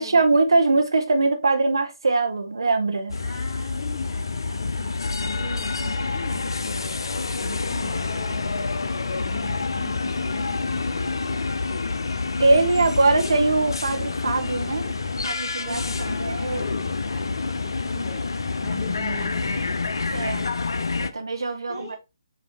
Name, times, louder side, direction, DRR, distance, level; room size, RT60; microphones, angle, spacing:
voice 1, 0.0-3.1 12.4-14.9 15.2-15.8 16.1-16.6 20.1-20.5 21.0-22.0, right 3 dB, 70° right, 0.8 m, -22 dB
sound 1, 3.1-21.1, left 4 dB, 70° left, 0.4 m, -28 dB
voice 2, 3.1-6.9 7.3-12.0 13.1-13.4 15.6-18.3 18.6-19.8 21.4-22.0, left 2 dB, 35° left, 1.2 m, -39 dB
6.5 x 2.6 x 2.8 m
figure-of-eight pair, 140°, 2 cm